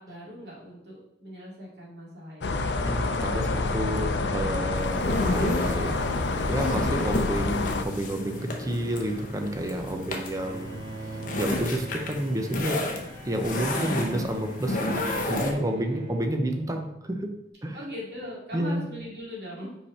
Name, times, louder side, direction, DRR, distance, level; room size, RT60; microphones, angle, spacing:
voice 1, 0.0-2.7 15.7-16.4 17.7-19.7, equal, 65° right, -5 dB, 2.4 m, -40 dB
sound 1, 2.4-7.8, left 3 dB, 75° left, 0.6 m, -27 dB
voice 2, 2.8-6.2 6.5-12.8 13.2-17.3 17.6-17.8 18.5-18.9, right 1 dB, 20° right, 5 dB, 0.6 m, -30 dB
sound 2, 4.8-15.5, left 2 dB, 45° left, 0.9 m, -32 dB
Bowed string instrument, 10.4-17.2, right 2 dB, 85° right, 2.0 m, -42 dB
5.3 x 4.9 x 4.3 m, 0.81 s
head